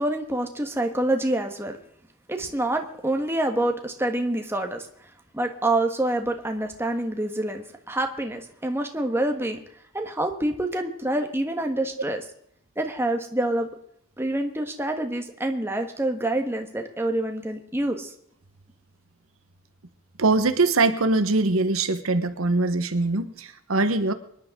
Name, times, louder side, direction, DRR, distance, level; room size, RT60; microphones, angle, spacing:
voice 1, 0.0-1.8 2.3-4.9 5.3-9.6 9.9-12.2 12.8-13.7 14.2-18.1, right 1 dB, 10° right, 4 dB, 1.4 m, -26 dB
voice 2, 20.2-24.1, right 3 dB, 85° right, 9 dB, 1.2 m, -22 dB
24.0 x 11.0 x 3.7 m, 0.69 s
head